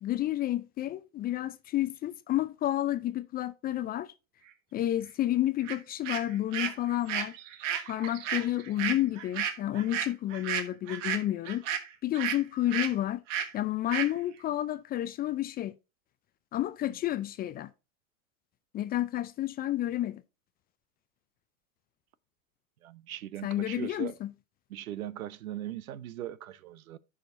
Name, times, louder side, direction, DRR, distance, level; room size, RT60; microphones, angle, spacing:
voice 1, 0.0-4.1 4.7-7.3 7.9-11.6 12.0-13.2 13.5-15.7 16.5-17.7 18.7-20.2 23.4-24.3, left 13 dB, 25° left, 0.4 m, -30 dB
sound 1, 5.7-5.8 6.0-12.4 12.7-12.9 13.3-13.5 13.9-14.1, right 9 dB, 65° right, 1.4 m, -33 dB
voice 2, 22.8-24.1 24.7-27.0, right 12 dB, 80° right, 0.7 m, -39 dB
15.0 x 5.0 x 2.6 m
hypercardioid pair, 95°, 41 cm